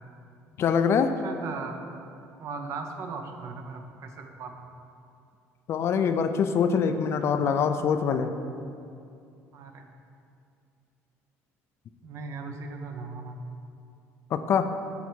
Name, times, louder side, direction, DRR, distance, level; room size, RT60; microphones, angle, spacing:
voice 1, 0.6-1.1 5.7-8.3 14.3-14.7, left 6 dB, 50° left, 9 dB, 0.4 m, -24 dB
voice 2, 1.2-1.8 2.4-4.7 9.5-9.9 12.0-13.6, right 4 dB, 55° right, 5 dB, 0.7 m, -38 dB
7.1 x 3.4 x 6.1 m, 2.5 s
cardioid pair, 115°, 6 cm